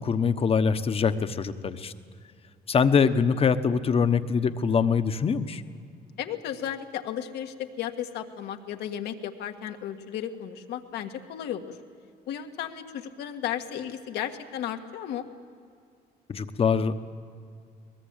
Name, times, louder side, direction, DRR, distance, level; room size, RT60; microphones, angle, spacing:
voice 1, 0.0-1.9 2.7-5.6 16.3-16.9, left 6 dB, 35° left, 10 dB, 1.1 m, -23 dB
voice 2, 6.2-11.8 12.3-15.2, left 10 dB, 80° left, 5 dB, 1.6 m, -34 dB
23.0 x 20.5 x 8.8 m, 2.3 s
cardioid pair, 110°, 17 cm